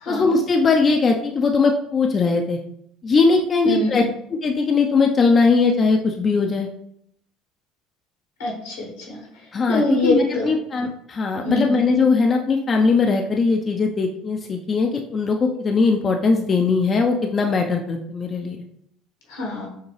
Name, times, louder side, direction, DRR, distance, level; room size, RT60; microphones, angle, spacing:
voice 1, 0.1-2.6 3.0-4.0 4.3-6.7 9.5-18.6, left 4 dB, 35° left, 2 dB, 0.5 m, -20 dB
voice 2, 3.6-4.0 8.4-9.2 9.7-10.5 11.4-11.7 19.3-19.7, left 2 dB, 85° left, -1 dB, 1.5 m, -24 dB
6.4 x 2.2 x 3.2 m, 0.71 s
hypercardioid pair, 75°, 0 cm